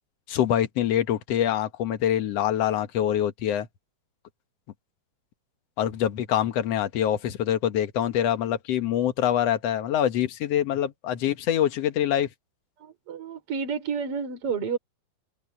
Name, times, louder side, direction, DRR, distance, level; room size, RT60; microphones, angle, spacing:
voice 1, 0.3-3.7 5.8-12.3, left 10 dB, 60° left, 1.7 m, -25 dB
voice 2, 12.8-14.8, right 6 dB, 40° right, 5.0 m, -30 dB
open air
omnidirectional pair, 4.3 m